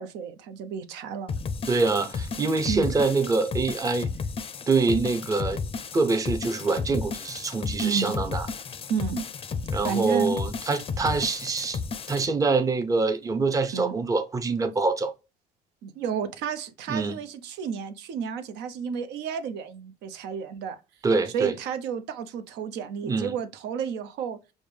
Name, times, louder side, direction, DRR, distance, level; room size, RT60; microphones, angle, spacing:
voice 1, 0.0-1.3 2.7-2.9 7.8-8.2 8.9-9.3 9.8-10.3 13.7-14.0 15.8-20.8 21.3-24.4, right 7 dB, 85° right, 0.5 m, -31 dB
sound 1, 1.3-12.3, left 5 dB, 35° left, 0.4 m, -33 dB
voice 2, 1.7-4.1 4.7-5.6 5.9-8.5 9.7-11.8 12.1-15.1 16.9-17.2 21.0-21.5 23.0-23.4, right 3 dB, 20° right, 0.5 m, -25 dB
5.0 x 2.1 x 3.2 m
cardioid pair, 110°, 17 cm